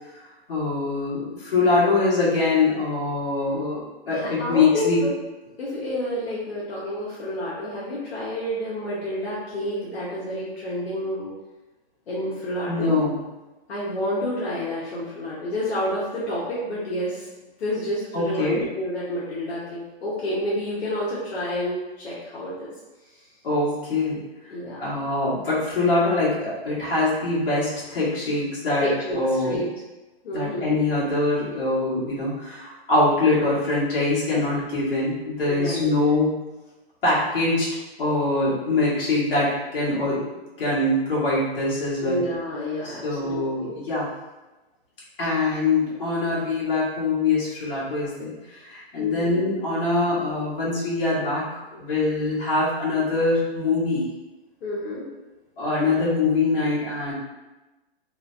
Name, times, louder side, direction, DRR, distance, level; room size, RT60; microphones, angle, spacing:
voice 1, 0.5-5.0 12.7-13.2 18.1-18.6 23.4-24.2 24.8-29.7 30.3-36.3 37.0-37.7 38.0-40.3 40.6-42.2 42.8-44.1 45.2-54.0 55.6-57.1, left 3 dB, 60° left, -8 dB, 1.4 m, -23 dB
voice 2, 4.1-5.1 5.6-11.3 12.1-13.0 13.7-17.3 17.6-22.7 24.5-24.9 28.8-29.7 30.2-30.8 35.4-35.9 42.0-43.7 49.0-49.4 54.6-55.1, left 1 dB, 85° left, -8 dB, 0.9 m, -29 dB
3.1 x 2.1 x 2.5 m, 1.1 s
hypercardioid pair, 175°, 31 cm